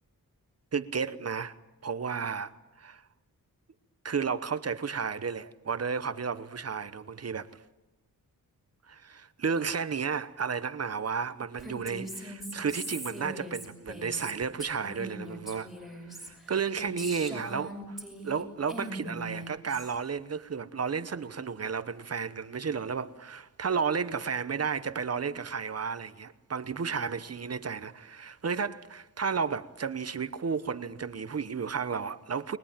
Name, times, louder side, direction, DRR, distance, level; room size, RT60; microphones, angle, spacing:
voice 1, 0.7-1.5 1.8-2.5 2.8-3.0 4.0-7.5 8.9-15.7 16.1-18.0 18.2-32.6, right 6 dB, 45° right, 1.0 m, -32 dB
Female speech woman speaking, 11.6-18.4 18.7-20.0, equal, ahead, 6.9 m, -41 dB
30.0 x 21.5 x 8.9 m
wide cardioid pair, 145°, 35 cm